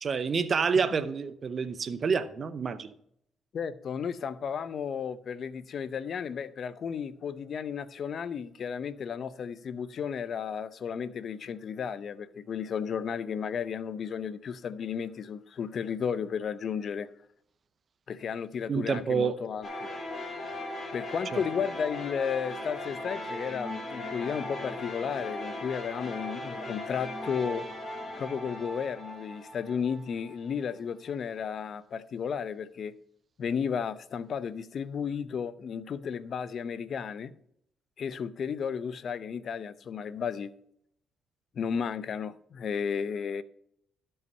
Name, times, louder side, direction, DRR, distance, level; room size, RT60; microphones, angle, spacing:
voice 1, 0.0-2.9 18.7-19.3 21.3-21.4, right 5 dB, 45° right, 0.6 m, -28 dB
voice 2, 3.5-17.1 18.1-19.9 20.9-27.7 28.2-32.9 33.4-37.3 38.0-40.5 41.5-43.4, left 7 dB, 55° left, 0.7 m, -33 dB
sound 1, 19.6-30.5, left 1 dB, 35° left, 3.4 m, -38 dB
12.0 x 5.6 x 5.5 m
cardioid pair, 90°, 0 cm